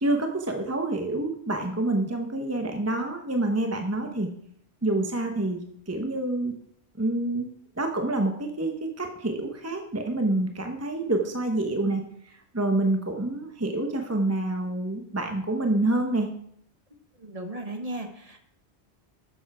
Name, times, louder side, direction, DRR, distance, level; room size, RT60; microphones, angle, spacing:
voice 1, 0.0-4.3 4.8-6.5 7.0-7.5 7.8-12.0 12.5-16.3, right 2 dB, 15° right, 3 dB, 0.8 m, -27 dB
voice 2, 17.2-18.4, right 1 dB, 35° right, 5 dB, 1.3 m, -36 dB
12.5 x 7.1 x 4.8 m, 0.70 s
omnidirectional pair, 1.2 m